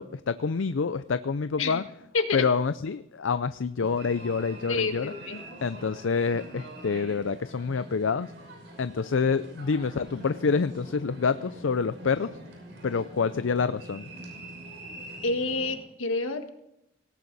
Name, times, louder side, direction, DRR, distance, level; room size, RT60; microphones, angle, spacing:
voice 1, 0.0-1.8 2.3-5.1 5.6-8.3 8.8-12.4 12.8-14.1, left 5 dB, 75° left, 13 dB, 0.5 m, -27 dB
voice 2, 2.1-2.5 4.7-5.4 15.2-16.5, left 3 dB, 90° left, 6 dB, 1.8 m, -28 dB
sound 1, 3.8-15.8, right 1 dB, 60° right, 5.9 m, -45 dB
18.0 x 18.0 x 4.1 m, 0.81 s
head